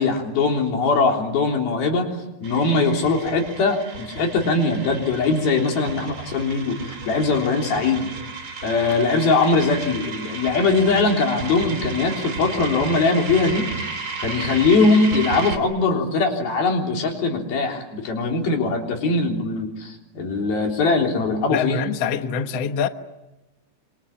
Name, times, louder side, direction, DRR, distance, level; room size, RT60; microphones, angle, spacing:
voice 1, 0.0-2.1 2.4-8.1 8.6-13.7 14.2-21.8, left 3 dB, 60° left, 5.3 m, -21 dB
sound 1, 2.4-15.6, right 4 dB, 30° right, 3.2 m, -33 dB
voice 2, 21.5-22.9, left 7 dB, 85° left, 1.3 m, -24 dB
26.5 x 25.0 x 8.7 m
omnidirectional pair, 4.9 m